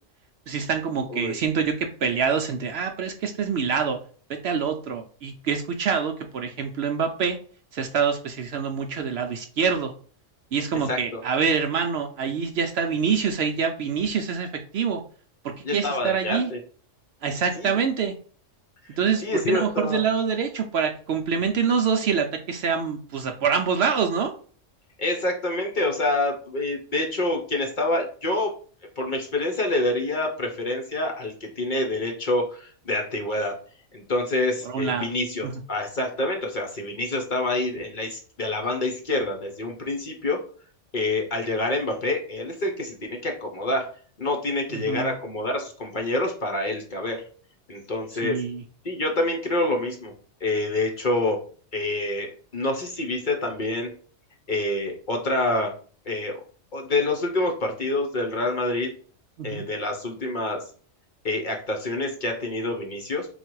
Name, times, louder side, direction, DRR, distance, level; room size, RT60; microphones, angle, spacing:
voice 1, 0.5-4.0 4.3-7.4 7.7-9.9 10.5-14.5 14.7-15.0 15.4-16.5 17.2-18.1 19.0-24.3 34.6-35.1 35.4-35.5 44.7-45.1 48.2-48.6 59.4-59.6, right 6 dB, 65° right, 5 dB, 0.7 m, -25 dB
voice 2, 15.6-16.6 17.6-17.8 19.2-20.0 25.0-28.5 29.0-33.5 33.9-40.4 40.9-43.9 44.2-47.2 47.7-48.4 48.8-50.1 50.4-51.4 51.7-53.9 54.5-55.7 56.1-56.4 56.7-58.9 59.4-60.6 61.2-63.3, left 2 dB, 45° left, 1 dB, 0.9 m, -27 dB
3.9 x 2.4 x 4.5 m, 0.42 s
omnidirectional pair, 1.3 m